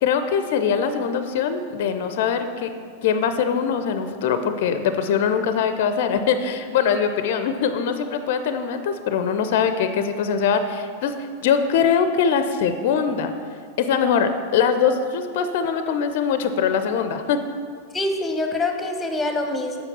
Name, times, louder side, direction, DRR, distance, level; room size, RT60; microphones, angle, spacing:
voice 1, 0.0-2.7 3.0-11.1 11.4-13.3 13.8-17.4, left 7 dB, 50° left, 9 dB, 0.5 m, -22 dB
voice 2, 17.9-19.8, left 2 dB, 10° left, 4 dB, 1.1 m, -25 dB
8.2 x 5.6 x 6.7 m, 2.2 s
figure-of-eight pair, 90°, 0 cm